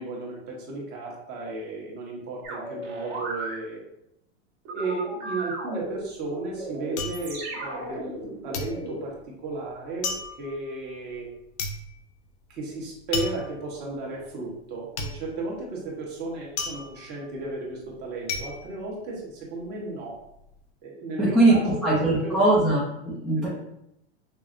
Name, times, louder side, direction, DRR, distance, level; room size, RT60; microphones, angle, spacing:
voice 1, 0.0-3.8 4.7-9.1 9.4-11.3 12.5-20.2 20.8-22.4 23.4-23.5, right 2 dB, 30° right, -3 dB, 1.1 m, -34 dB
sound 1, 2.4-3.5 4.6-9.1, right 2 dB, 50° right, 1.5 m, -35 dB
sound 2, 5.8-8.2 8.5-19.7 20.0-20.6, left 3 dB, 85° left, 0.7 m, -35 dB
voice 2, 21.2-23.5, right 2 dB, ahead, -9 dB, 0.5 m, -21 dB
5.7 x 2.0 x 2.5 m, 0.80 s
supercardioid pair, 140°, 33 cm